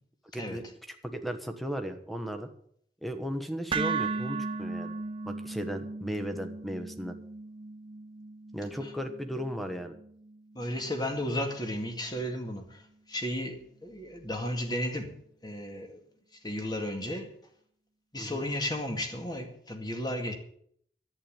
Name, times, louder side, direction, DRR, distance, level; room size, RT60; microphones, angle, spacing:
voice 1, 0.3-2.5 3.0-4.9 5.2-7.2 8.5-9.9 18.2-18.5, equal, ahead, 1.3 m, -36 dB
sound 1, 3.7-11.8, right 4 dB, 30° right, 0.7 m, -37 dB
voice 2, 10.6-15.2 15.4-16.0 16.4-17.4 18.1-20.3, left 1 dB, 25° left, 2.1 m, -34 dB
11.0 x 9.2 x 8.6 m
head